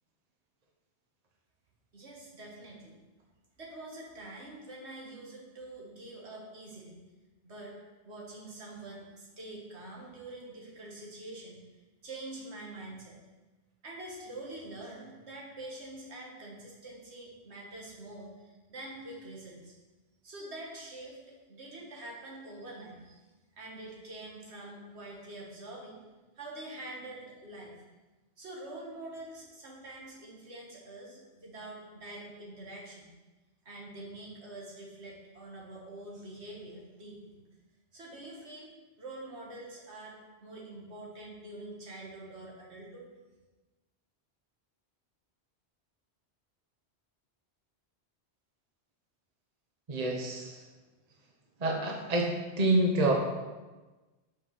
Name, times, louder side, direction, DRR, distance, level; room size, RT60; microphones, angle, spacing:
voice 1, 1.9-3.0 3.6-7.0 7.4-7.7 8.1-11.6 12.0-13.2 13.8-19.8 20.2-23.2 23.6-26.0 26.4-27.8 28.4-33.1 33.7-37.4 37.9-38.7 39.0-43.1, right 2 dB, 75° right, -2 dB, 1.9 m, -45 dB
voice 2, 49.9-50.6 51.6-52.3 52.6-53.1, right 2 dB, 40° right, 1 dB, 1.0 m, -27 dB
6.1 x 5.5 x 5.9 m, 1.2 s
omnidirectional pair, 1.1 m